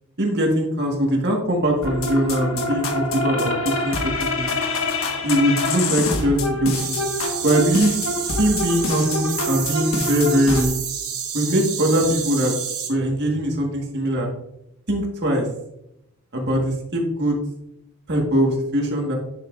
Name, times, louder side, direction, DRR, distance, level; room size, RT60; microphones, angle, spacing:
voice 1, 0.2-4.5 5.2-7.0 7.4-8.0 8.4-10.7 11.3-12.5 12.9-14.3 14.9-15.5 16.3-17.4 18.1-19.2, right 1 dB, 50° right, 0 dB, 1.7 m, -21 dB
sound 1, 1.8-10.6, left 2 dB, 65° left, 1.5 m, -26 dB
sound 2, 6.7-12.9, right 8 dB, 75° right, 2.5 m, -29 dB
9.6 x 7.6 x 2.6 m, 0.80 s
head